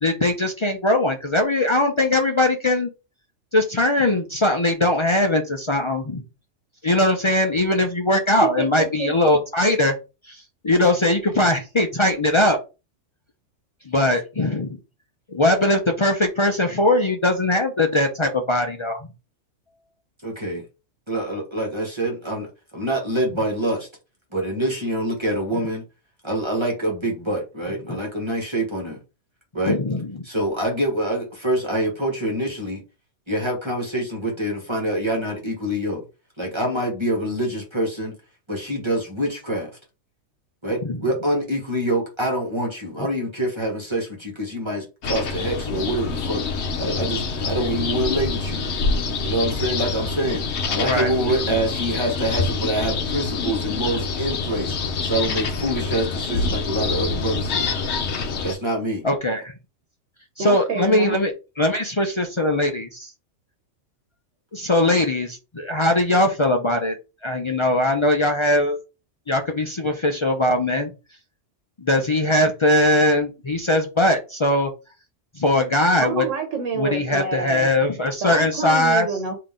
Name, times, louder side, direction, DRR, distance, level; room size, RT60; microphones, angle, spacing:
voice 1, 0.0-2.9 3.5-6.3 6.8-10.0 10.3-12.6 13.9-14.8 15.3-19.1 27.9-28.0 29.7-30.2 40.8-41.0 50.8-51.1 59.0-59.5 60.4-61.3 61.6-62.9 64.5-67.0 67.2-68.8 69.3-70.9 71.8-74.7 75.4-76.2 76.8-79.1, left 1 dB, 40° left, 3 dB, 0.4 m, -20 dB
voice 2, 8.6-9.1 60.4-61.2 76.0-77.7 78.2-79.4, right 5 dB, 85° right, 4 dB, 1.2 m, -28 dB
voice 3, 20.2-20.6 21.1-23.9 24.3-25.8 26.2-29.0 29.5-29.8 30.2-32.8 33.3-36.0 36.4-38.1 38.5-39.7 40.6-46.4 46.8-48.6 49.2-54.8 55.0-57.7 58.4-59.0, right 1 dB, 25° right, 0 dB, 1.2 m, -25 dB
sound 1, 45.0-58.5, left 4 dB, 65° left, 1.0 m, -26 dB
3.8 x 2.8 x 3.6 m, 0.29 s
omnidirectional pair, 1.3 m